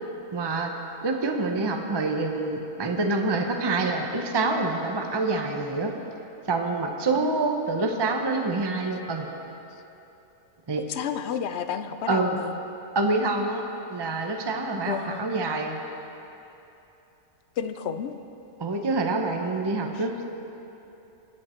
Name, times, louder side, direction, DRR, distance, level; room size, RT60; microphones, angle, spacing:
voice 1, 0.3-0.7 1.0-5.9 6.5-9.3 10.7-10.8 12.1-12.4 12.9-13.6 13.9-15.8 18.6-20.3, right 3 dB, 25° right, 3 dB, 0.6 m, -26 dB
voice 2, 10.8-12.6 14.9-15.3 17.6-18.1 19.9-20.0, left 8 dB, 60° left, 9 dB, 0.8 m, -31 dB
21.5 x 7.6 x 4.4 m, 2.9 s
omnidirectional pair, 1.5 m